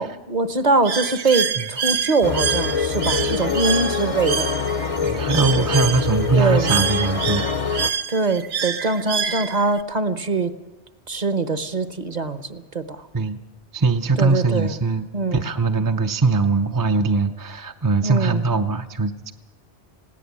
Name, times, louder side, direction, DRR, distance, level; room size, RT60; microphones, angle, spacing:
voice 1, 0.0-4.5 5.6-5.7 6.3-6.7 8.1-10.5 11.1-13.1 14.2-14.7 15.1-15.5 18.0-18.5, right 3 dB, 40° right, 12 dB, 1.0 m, -23 dB
Bird, 0.8-9.8, right 7 dB, 65° right, 1.1 m, -27 dB
sound 1, 2.2-7.9, left 5 dB, 35° left, 0.7 m, -25 dB
voice 2, 5.0-7.4 13.1-13.4 13.7-15.1 15.3-19.3, right 4 dB, 25° right, 6 dB, 0.6 m, -21 dB
20.0 x 16.5 x 8.5 m, 1.2 s
omnidirectional pair, 1.2 m